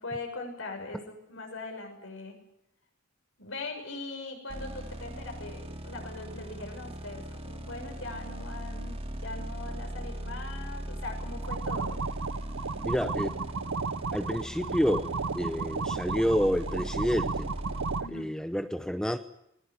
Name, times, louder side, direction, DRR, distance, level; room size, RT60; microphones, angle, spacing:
voice 1, 0.0-2.4 3.4-12.0 18.0-18.3, left 3 dB, 75° left, 3 dB, 6.4 m, -41 dB
sound 1, 4.5-18.0, right 1 dB, 30° right, 2.6 m, -39 dB
sound 2, 11.4-18.1, right 4 dB, 85° right, 0.8 m, -34 dB
voice 2, 12.8-13.4 14.1-15.1 15.3-17.5 18.1-19.2, equal, 5° left, 9 dB, 0.8 m, -29 dB
21.0 x 19.0 x 9.4 m, 0.79 s
head